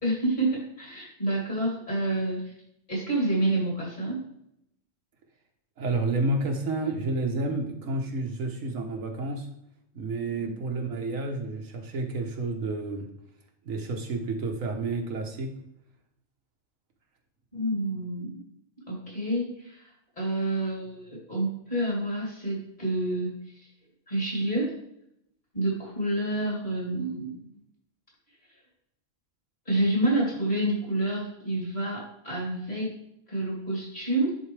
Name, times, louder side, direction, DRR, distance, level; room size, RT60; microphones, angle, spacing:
voice 1, 0.0-2.5 2.9-4.2 10.4-10.5 17.5-18.4 18.9-19.9 20.2-23.7 24.1-24.7 25.5-27.4 29.7-32.9 33.3-34.4, right 1 dB, 35° left, -5 dB, 3.4 m, -28 dB
voice 2, 5.8-9.5 9.9-13.1 13.6-15.5, right 2 dB, 85° right, 3 dB, 1.5 m, -30 dB
10.5 x 4.3 x 3.3 m, 0.76 s
omnidirectional pair, 1.3 m